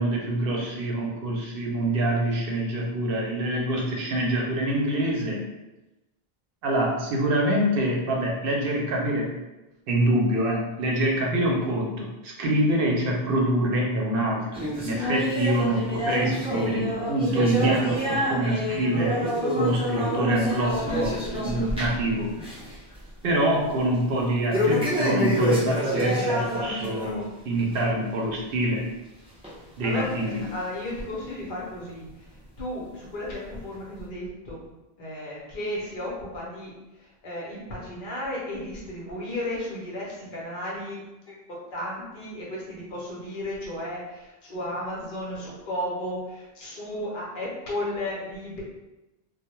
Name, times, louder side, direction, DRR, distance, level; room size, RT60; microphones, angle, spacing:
voice 1, 0.0-5.4 6.6-9.4 9.9-19.2 19.6-22.3 23.2-28.9 29.8-30.5, right 1 dB, 70° right, -1 dB, 0.7 m, -25 dB
sound 1, 14.5-22.1 22.4-22.7 23.1-23.2 24.5-27.2 27.6-27.8 28.5-28.6 29.4-29.5 30.3-30.4, equal, 10° right, 0.3 m, -27 dB
voice 2, 29.8-32.0 32.6-34.6 35.0-36.8 37.2-41.4 41.7-48.6, left 1 dB, 60° left, -4 dB, 0.8 m, -34 dB
2.2 x 2.0 x 2.9 m, 1.0 s
omnidirectional pair, 1.0 m